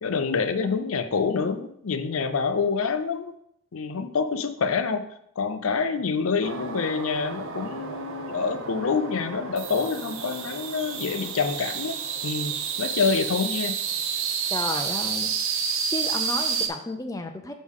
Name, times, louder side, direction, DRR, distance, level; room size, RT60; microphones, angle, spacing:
voice 1, 0.0-3.3 3.7-5.0 5.4-13.7, left 5 dB, 65° left, 9 dB, 0.5 m, -27 dB
sound 1, 6.4-16.7, right 6 dB, 60° right, 0.7 m, -30 dB
voice 2, 14.5-15.3 15.9-17.5, left 2 dB, 15° left, 5 dB, 0.4 m, -32 dB
6.3 x 6.1 x 3.6 m, 0.73 s
head